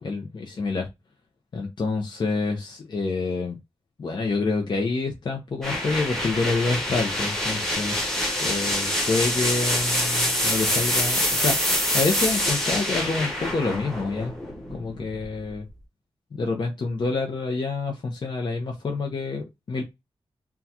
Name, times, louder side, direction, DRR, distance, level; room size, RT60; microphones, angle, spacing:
voice 1, 0.0-0.9 1.5-3.6 4.0-7.9 8.4-11.6 11.9-14.3 14.7-15.6 16.3-19.9, left 3 dB, 50° left, 1 dB, 0.7 m, -27 dB
sound 1, 5.6-15.4, equal, 5° left, 1.1 m, -25 dB
3.6 x 2.3 x 2.8 m, 0.21 s
wide cardioid pair, 110°, 10 cm